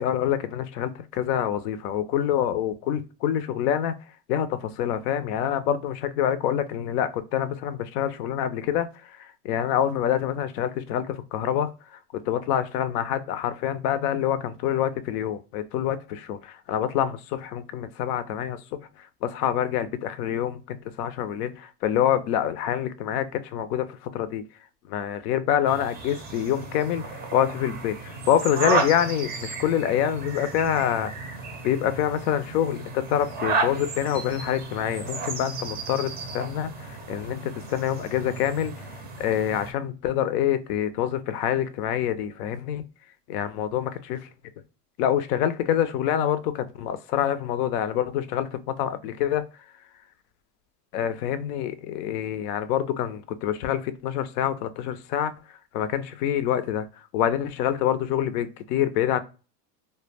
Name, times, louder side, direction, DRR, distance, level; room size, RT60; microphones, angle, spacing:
voice 1, 0.0-4.0 4.3-24.4 24.9-38.9 39.2-42.9 43.3-44.3 45.0-49.5 50.9-55.3 55.7-56.9 57.1-59.2, left 10 dB, 75° left, 12 dB, 0.5 m, -26 dB
sound 1, 25.7-39.7, right 4 dB, 20° right, 0.4 m, -33 dB
2.2 x 2.1 x 3.1 m, 0.35 s
supercardioid pair, 105°, 47 cm